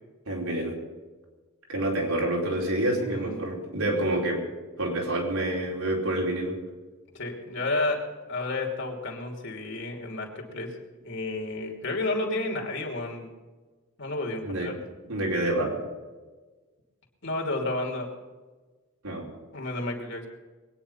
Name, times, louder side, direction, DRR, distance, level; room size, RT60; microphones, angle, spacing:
voice 1, 0.3-0.7 1.7-4.4 4.8-6.6 14.4-14.7 15.1-15.8 19.0-19.2, right 1 dB, 75° right, -2 dB, 4.7 m, -27 dB
voice 2, 3.1-3.5 7.1-8.0 8.3-10.7 11.0-13.3 14.0-14.8 17.2-18.1 19.5-20.3, left 2 dB, 55° left, 1 dB, 3.0 m, -31 dB
22.0 x 9.8 x 5.7 m, 1.3 s
head